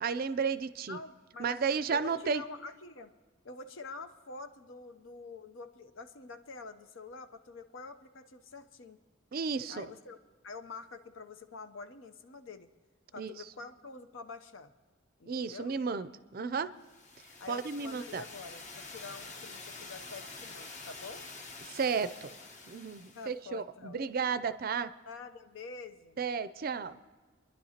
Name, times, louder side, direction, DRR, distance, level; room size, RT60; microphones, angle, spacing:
voice 1, 0.0-1.0 1.4-2.4 9.3-9.9 13.2-13.3 15.3-16.7 17.5-18.2 21.7-22.3 22.7-24.9 26.2-27.0, right 5 dB, 45° right, 15 dB, 0.4 m, -33 dB
voice 2, 0.9-1.5 1.9-3.1 3.4-9.0 9.7-10.2 10.4-12.7 13.1-14.7 15.2-15.7 17.4-21.3 23.1-24.0 25.1-26.2, left 4 dB, 75° left, 8 dB, 0.7 m, -47 dB
sound 1, 16.8-23.4, left 3 dB, 40° left, 1.0 m, -47 dB
27.0 x 11.0 x 2.9 m, 1.4 s
head